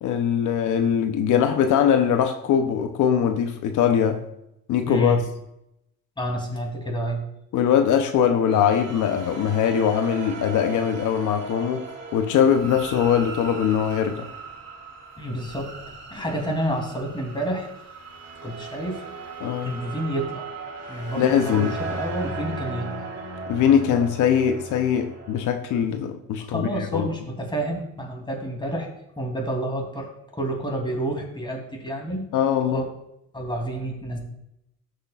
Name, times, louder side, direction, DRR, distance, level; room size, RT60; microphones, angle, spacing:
voice 1, 0.0-4.2 4.7-5.2 7.5-14.3 19.4-19.8 21.2-21.8 23.5-27.1 32.3-32.9, left 8 dB, 80° left, 7 dB, 0.8 m, -21 dB
voice 2, 4.9-5.2 6.2-7.2 15.2-15.7 16.1-17.7 18.4-19.0 19.6-20.5 20.9-22.9 26.4-28.9 29.2-32.3 32.7-32.8 33.3-34.2, right 1 dB, 15° left, 1 dB, 3.0 m, -29 dB
sound 1, 8.5-25.5, right 3 dB, 55° right, 2.4 m, -37 dB
15.0 x 6.5 x 2.4 m, 0.82 s
cardioid pair, 90°, 30 cm